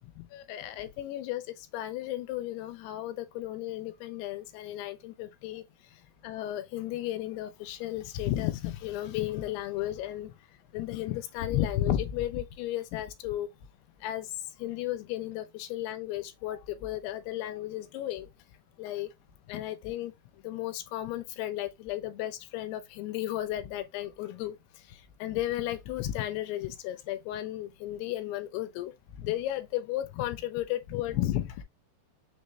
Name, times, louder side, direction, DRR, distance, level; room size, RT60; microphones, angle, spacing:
voice 1, 0.3-1.4 1.7-5.6 6.2-10.3 10.7-13.5 14.0-14.3 14.6-18.3 18.8-19.1 19.5-20.1 20.4-24.6 25.2-28.9 29.2-31.6, left 13 dB, 80° left, 2.5 m, -34 dB
6.3 x 2.2 x 3.0 m
omnidirectional pair, 4.7 m